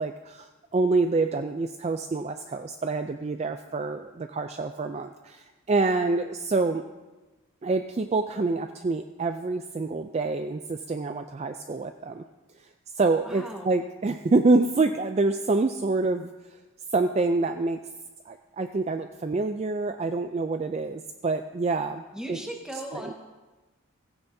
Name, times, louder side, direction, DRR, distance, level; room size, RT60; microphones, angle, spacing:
voice 1, 0.0-6.9 7.6-12.2 12.6-12.7 12.9-16.6 16.9-17.8 18.3-22.4 22.9-23.1, right 3 dB, 30° right, 8 dB, 0.3 m, -27 dB
voice 2, 13.2-13.7 22.1-23.1, right 1 dB, 5° right, 0 dB, 1.5 m, -37 dB
16.5 x 15.0 x 2.7 m, 1.2 s
head